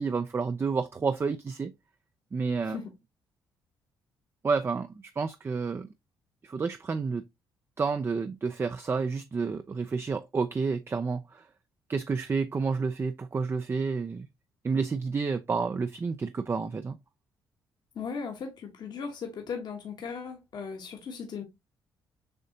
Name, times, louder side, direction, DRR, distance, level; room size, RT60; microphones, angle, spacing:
voice 1, 0.0-1.7 2.3-2.8 4.4-5.9 6.4-7.2 7.8-11.4 11.9-14.3 14.6-17.0, right 4 dB, 30° right, 0.4 m, -30 dB
voice 2, 17.9-21.4, left 5 dB, 55° left, 1.2 m, -37 dB
6.8 x 2.7 x 2.7 m
supercardioid pair, 70°, 8 cm